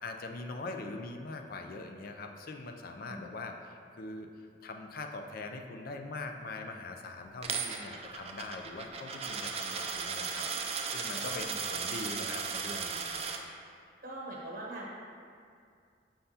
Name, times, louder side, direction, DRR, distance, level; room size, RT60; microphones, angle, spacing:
voice 1, 0.0-10.5 10.9-13.2, left 3 dB, 55° left, 4 dB, 0.4 m, -42 dB
Coin (dropping), 7.4-13.4, right 5 dB, 35° right, 0.4 m, -36 dB
voice 2, 14.0-14.9, right 1 dB, 55° right, -4 dB, 0.9 m, -42 dB
6.7 x 5.6 x 2.8 m, 2.3 s
head